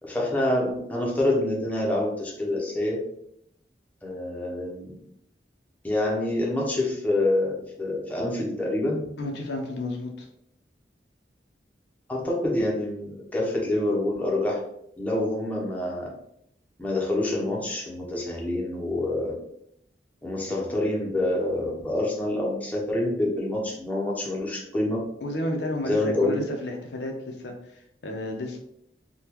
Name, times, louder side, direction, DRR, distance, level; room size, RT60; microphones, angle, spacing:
voice 1, 0.0-3.0 4.0-5.0 5.8-9.1 12.1-14.6 15.0-16.1 16.8-19.4 20.2-25.0 25.8-26.4, left 1 dB, 10° left, -3 dB, 0.7 m, -26 dB
voice 2, 9.2-10.3 25.2-28.6, left 1 dB, 75° left, 2 dB, 0.6 m, -32 dB
3.6 x 2.2 x 2.9 m, 0.73 s
head